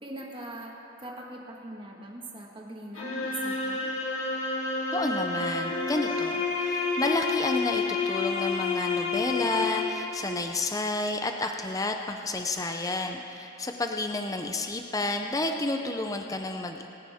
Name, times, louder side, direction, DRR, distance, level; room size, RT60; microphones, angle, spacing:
voice 1, 0.0-3.9, right 1 dB, 25° right, -2 dB, 1.5 m, -41 dB
sound 1, 2.9-10.2, left 4 dB, 65° left, 2.8 m, -29 dB
voice 2, 4.9-16.9, left 2 dB, 15° left, 4 dB, 0.5 m, -30 dB
27.5 x 10.5 x 3.6 m, 3.0 s
head